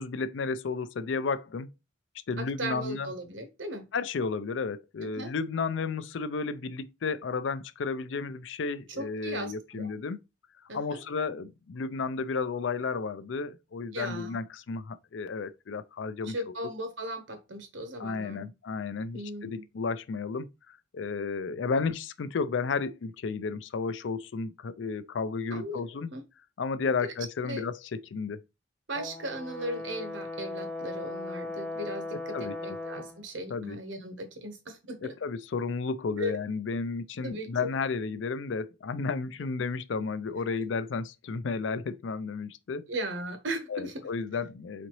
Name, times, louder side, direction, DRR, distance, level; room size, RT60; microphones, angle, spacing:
voice 1, 0.0-1.7 2.3-3.1 3.9-10.2 10.7-16.6 18.0-26.1 26.6-28.4 32.3-32.6 33.5-33.8 35.2-42.9 43.7-44.9, left 4 dB, 80° left, 0.4 m, -33 dB
voice 2, 2.4-3.9 5.0-5.3 8.9-9.9 10.7-11.0 13.9-14.4 16.3-18.5 19.1-19.6 25.5-25.8 26.1-26.2 27.0-27.1 27.4-27.6 28.9-35.1 36.2-36.4 37.2-37.7 42.9-43.9, right 1 dB, 85° right, 1.1 m, -37 dB
Brass instrument, 28.9-33.2, left 2 dB, 5° left, 0.7 m, -38 dB
4.1 x 3.8 x 3.0 m
head